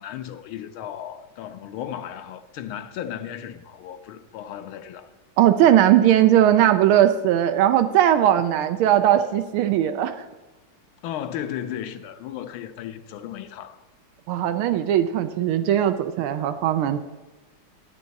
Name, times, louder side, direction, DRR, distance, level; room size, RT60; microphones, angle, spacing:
voice 1, 0.0-5.1 11.0-13.8, left 10 dB, 80° left, 1.5 m, -35 dB
voice 2, 5.4-10.2 14.3-17.0, right 11 dB, 90° right, 1.5 m, -19 dB
12.5 x 9.4 x 4.0 m
omnidirectional pair, 2.3 m